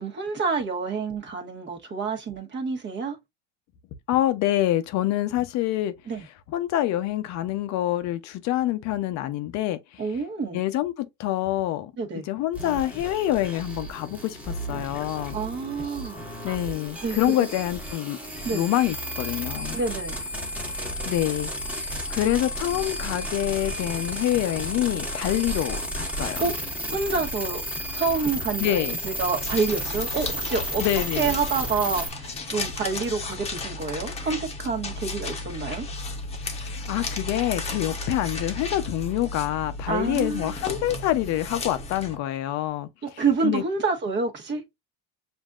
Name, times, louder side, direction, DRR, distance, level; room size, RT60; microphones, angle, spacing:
voice 1, 0.0-3.2 6.1-6.2 10.0-10.6 12.0-12.2 15.3-16.3 17.0-17.2 18.4-18.6 19.7-20.2 26.4-26.5 26.9-27.6 27.9-30.8 31.2-35.8 39.9-40.5 43.0-44.6, right 4 dB, 30° right, 1.3 m, -28 dB
voice 2, 4.1-6.0 6.5-10.0 10.5-11.9 12.2-15.4 16.4-18.2 18.5-19.8 21.0-26.4 28.6-29.0 30.8-31.3 36.4-42.9 43.1-43.6, left 14 dB, 50° left, 0.7 m, -26 dB
sound 1, 12.5-32.1, equal, 5° right, 1.4 m, -33 dB
sound 2, 29.3-42.2, left 3 dB, 15° left, 1.0 m, -34 dB
7.2 x 2.7 x 2.4 m
cardioid pair, 140°, 36 cm